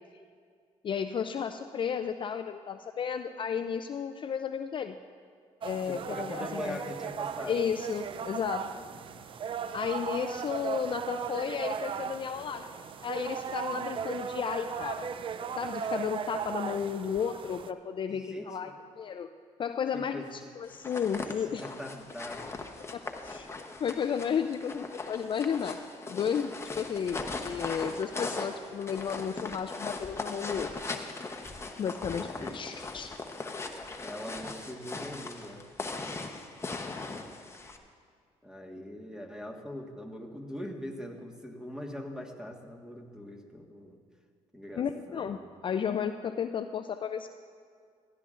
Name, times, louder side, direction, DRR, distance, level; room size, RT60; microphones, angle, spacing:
voice 1, 0.8-5.0 5.6-6.8 7.5-8.8 9.7-12.7 13.0-15.1 15.6-18.7 19.0-19.3 19.6-21.6 22.9-23.5 23.8-25.8 26.1-30.7 31.8-33.1 44.8-45.4 45.6-47.3, left 7 dB, 45° left, 8 dB, 0.4 m, -33 dB
sound 1, 5.6-17.7, right 7 dB, 45° right, 0.4 m, -37 dB
voice 2, 5.9-7.6 8.7-9.0 13.6-13.9 18.1-18.7 19.9-20.3 21.4-22.4 32.1-32.5 34.0-35.6 38.4-44.0 44.5-45.5, left 1 dB, 5° right, 2 dB, 1.5 m, -42 dB
sound 2, 20.7-37.8, left 3 dB, 20° left, 0.9 m, -39 dB
16.5 x 12.0 x 2.5 m, 2.1 s
supercardioid pair, 75°, 12 cm